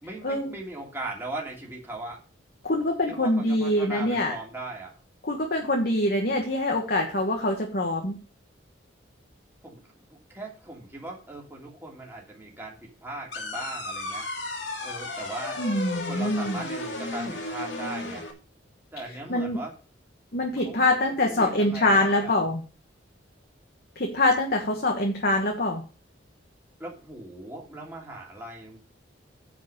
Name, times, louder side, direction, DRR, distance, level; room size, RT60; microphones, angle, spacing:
voice 1, 0.0-2.2 3.1-4.9 9.6-9.8 10.3-14.3 14.8-15.6 16.0-18.2 18.9-19.7 20.6-20.9 21.2-22.4 26.8-28.8, right 2 dB, 10° right, -2 dB, 2.8 m, -39 dB
voice 2, 2.6-4.3 5.2-8.2 15.6-16.6 19.3-19.6 20.3-22.6 24.0-25.8, left 1 dB, 50° left, 2 dB, 1.4 m, -24 dB
sound 1, 13.3-18.3, left 2 dB, 65° left, 2.5 m, -34 dB
9.9 x 4.9 x 6.7 m, 0.36 s
head